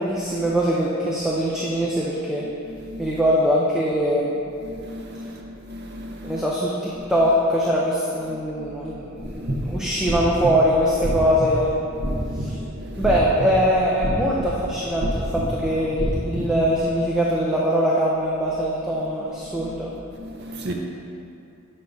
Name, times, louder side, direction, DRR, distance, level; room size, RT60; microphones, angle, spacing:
voice 1, 0.0-2.4 3.0-4.5 6.2-11.7 12.4-12.5 13.0-19.9, equal, 5° right, -6 dB, 0.5 m, -22 dB
voice 2, 2.4-3.2 4.6-6.5 7.0-7.1 8.3-9.9 12.0-13.0 15.0-15.1 16.4-16.5 19.5-19.7 20.1-20.7, equal, 50° right, 1 dB, 0.6 m, -38 dB
sound 1, 9.2-16.9, equal, 90° right, 1.0 m, -29 dB
8.3 x 6.6 x 2.6 m, 2.7 s
head